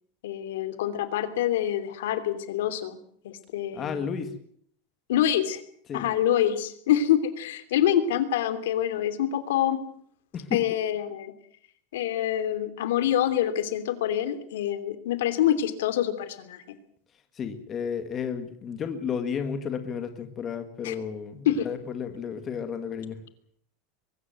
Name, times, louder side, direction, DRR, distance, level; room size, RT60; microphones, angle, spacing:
voice 1, 0.2-3.0 3.2-4.1 5.1-5.6 5.9-9.8 10.5-11.3 11.9-16.6 20.8-20.9 21.4-21.7, left 11 dB, 90° left, 11 dB, 2.9 m, -26 dB
voice 2, 3.7-4.3 5.9-6.1 10.3-10.6 17.3-23.2, left 7 dB, 20° left, 8 dB, 2.0 m, -32 dB
23.0 x 14.0 x 9.4 m, 0.64 s
supercardioid pair, 170°, 0 cm